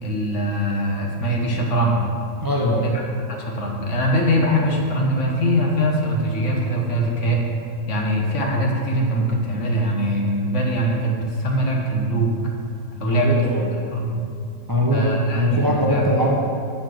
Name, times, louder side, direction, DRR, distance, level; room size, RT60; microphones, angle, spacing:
voice 1, 0.0-2.0 2.9-3.0 3.3-7.4 7.9-12.3 13.0-13.5 13.9-14.2 14.9-16.0, equal, 55° left, -1 dB, 1.4 m, -22 dB
voice 2, 2.4-3.0 13.0-13.7 14.7-16.3, equal, 25° right, -2 dB, 0.4 m, -21 dB
6.9 x 6.0 x 6.4 m, 2.4 s
omnidirectional pair, 1.6 m